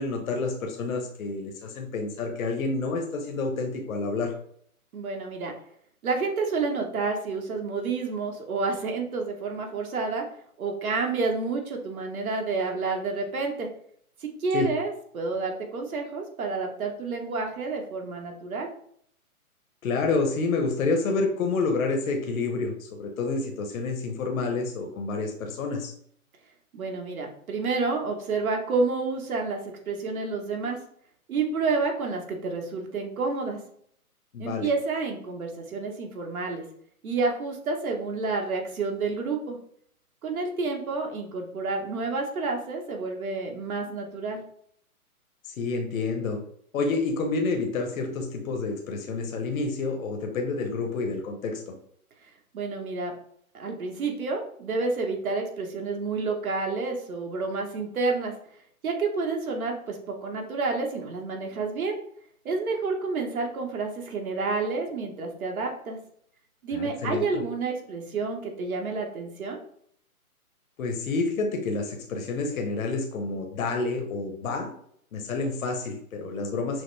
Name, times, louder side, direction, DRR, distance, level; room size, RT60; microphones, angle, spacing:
voice 1, 0.0-4.3 14.5-14.7 19.8-25.9 34.3-34.7 45.4-46.4 46.7-51.7 66.7-67.2 70.8-74.7 75.1-76.8, left 3 dB, 65° left, 3 dB, 0.8 m, -29 dB
voice 2, 4.9-5.5 6.0-10.3 10.6-13.7 14.2-18.7 26.7-29.6 29.9-30.8 31.3-33.6 34.4-36.6 37.0-39.6 40.2-44.4 52.5-53.1 53.5-58.3 58.8-62.0 62.4-66.0 66.6-69.6, right 4 dB, 70° right, 2 dB, 1.3 m, -29 dB
6.1 x 2.1 x 3.3 m, 0.66 s
hypercardioid pair, 150°, 44 cm